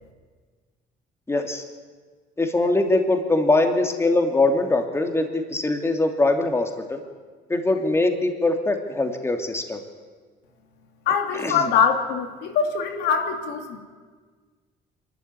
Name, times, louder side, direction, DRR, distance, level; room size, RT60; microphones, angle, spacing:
voice 1, 1.3-1.6 2.4-7.0 7.5-9.8 11.4-11.5, left 2 dB, 15° left, 5 dB, 2.7 m, -22 dB
voice 2, 11.1-13.8, left 6 dB, 85° left, 5 dB, 2.6 m, -23 dB
25.0 x 13.0 x 9.7 m, 1.5 s
cardioid pair, 110°, 17 cm